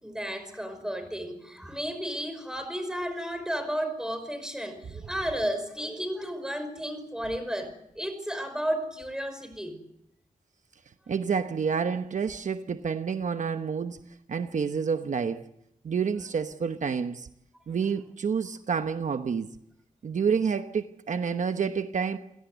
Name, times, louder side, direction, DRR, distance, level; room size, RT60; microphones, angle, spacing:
voice 1, 0.0-9.8, equal, 5° right, 5.3 m, -33 dB
voice 2, 11.1-14.0 14.3-15.5 15.8-17.3 17.7-19.5 20.0-22.2, right 6 dB, 70° right, 1.0 m, -28 dB
28.5 x 17.0 x 8.1 m
wide cardioid pair, 105°, 13 cm